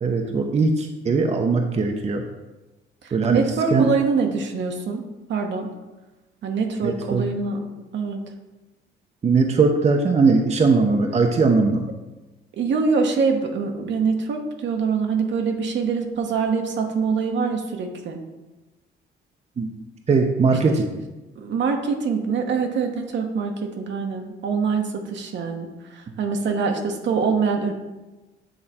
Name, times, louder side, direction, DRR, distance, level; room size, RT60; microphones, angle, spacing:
voice 1, 0.0-2.2 3.1-3.4 3.7-3.9 6.8-7.3 9.2-11.9 19.6-19.7 20.1-20.9, right 4 dB, 35° right, 3 dB, 0.7 m, -20 dB
voice 2, 3.0-5.0 5.3-5.7 6.4-7.7 7.9-8.2 12.5-18.2 20.7-20.8 21.4-27.7, right 5 dB, 65° right, 3 dB, 1.1 m, -24 dB
8.8 x 3.3 x 4.2 m, 1.1 s
cardioid pair, 90°, 20 cm